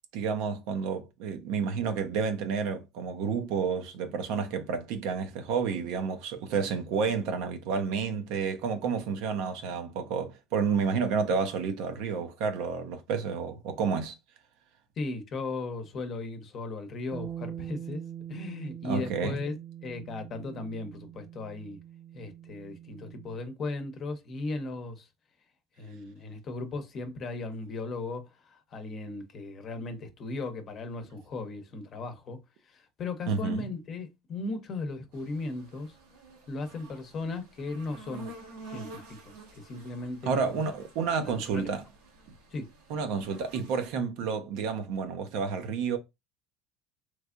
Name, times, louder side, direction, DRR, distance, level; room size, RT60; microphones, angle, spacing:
voice 1, 0.1-14.2 18.8-19.4 33.3-33.7 40.3-41.8 42.9-46.0, right 5 dB, 70° right, 0.7 m, -30 dB
voice 2, 15.0-18.0 18.3-19.6 19.8-21.8 22.1-25.1 25.8-32.4 32.7-35.9 36.5-38.3 38.7-40.6 41.0-41.7 42.5-42.7, left 3 dB, 40° left, 0.8 m, -37 dB
Bass guitar, 17.1-23.4, right 10 dB, 25° right, 0.6 m, -43 dB
sound 1, 35.1-43.9, right 2 dB, 90° right, 1.3 m, -50 dB
3.3 x 3.2 x 2.4 m
supercardioid pair, 120°, 0 cm